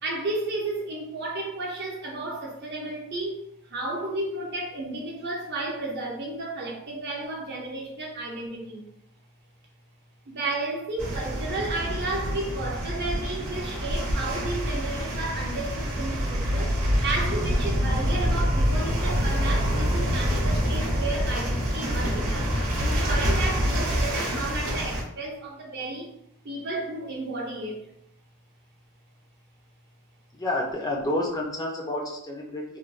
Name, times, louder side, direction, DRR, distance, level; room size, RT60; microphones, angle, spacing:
voice 1, 0.0-8.8 10.3-26.1 26.4-27.9, right 2 dB, 50° right, -2 dB, 0.7 m, -33 dB
sound 1, 11.0-25.0, equal, 85° right, 0.8 m, -26 dB
voice 2, 30.3-32.8, left 1 dB, 15° left, -1 dB, 0.3 m, -29 dB
3.0 x 2.0 x 2.4 m, 0.72 s
head